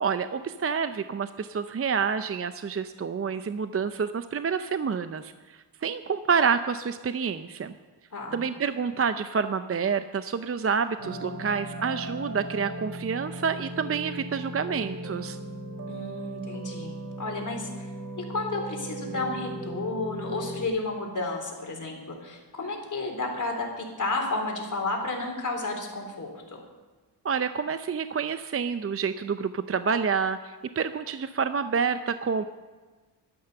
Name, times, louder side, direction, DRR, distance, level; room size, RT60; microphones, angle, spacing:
voice 1, 0.0-7.7 8.3-15.4 27.2-32.4, right 6 dB, 35° right, 11 dB, 0.6 m, -28 dB
voice 2, 8.1-8.4 15.9-17.9 18.2-26.6, left 2 dB, 45° left, 1 dB, 3.9 m, -32 dB
sound 1, 11.0-20.7, right 1 dB, 50° right, 2.1 m, -37 dB
13.0 x 12.5 x 6.7 m, 1.3 s
cardioid pair, 80°, 43 cm